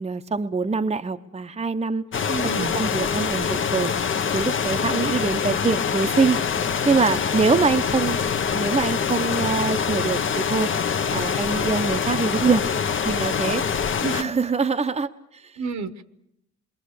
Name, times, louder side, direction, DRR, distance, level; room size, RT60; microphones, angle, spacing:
voice 1, 0.0-2.0 2.7-3.9 4.3-6.4 6.9-8.2 8.5-10.7 11.1-12.6 13.0-13.6 14.1-15.5, right 4 dB, 20° right, 7 dB, 0.9 m, -24 dB
sound 1, 2.1-14.2, left 6 dB, 40° left, 1.0 m, -25 dB
voice 2, 2.3-2.7 13.9-14.3 15.6-16.0, right 4 dB, 65° right, 12 dB, 1.4 m, -30 dB
27.5 x 22.0 x 6.8 m, 0.81 s
cardioid pair, 90°, 30 cm